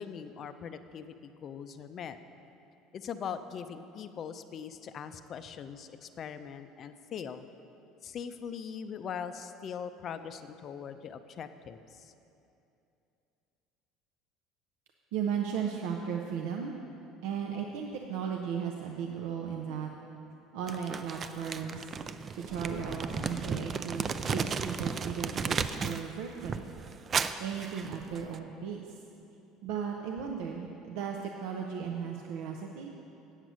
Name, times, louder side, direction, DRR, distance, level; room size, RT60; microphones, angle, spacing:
voice 1, 0.0-2.2 2.9-7.4 8.0-12.1, left 7 dB, 40° left, 10 dB, 0.4 m, -41 dB
voice 2, 15.1-16.7 17.2-19.9 20.5-21.9 22.3-26.7 27.4-29.0 29.6-32.9, right 7 dB, 80° right, 1 dB, 0.6 m, -36 dB
Crumpling crinkling, 20.7-26.1 26.4-28.4, right 5 dB, 30° right, 0.3 m, -34 dB
sound 1, 22.5-24.2, left 2 dB, 10° left, 0.8 m, -47 dB
8.1 x 7.8 x 6.2 m, 2.8 s
cardioid pair, 130°, 0 cm